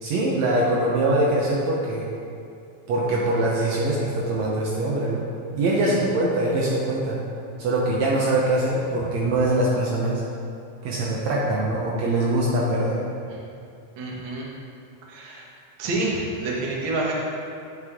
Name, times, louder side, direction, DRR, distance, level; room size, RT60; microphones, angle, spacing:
voice 1, 0.0-2.1 2.9-5.3 5.6-7.2 7.6-10.2 10.8-13.0, right 1 dB, 70° right, -4 dB, 1.9 m, -23 dB
voice 2, 14.0-14.5 15.1-15.5 15.8-17.1, right 2 dB, 50° right, -4 dB, 1.6 m, -28 dB
10.0 x 6.5 x 3.6 m, 2.5 s
omnidirectional pair, 3.6 m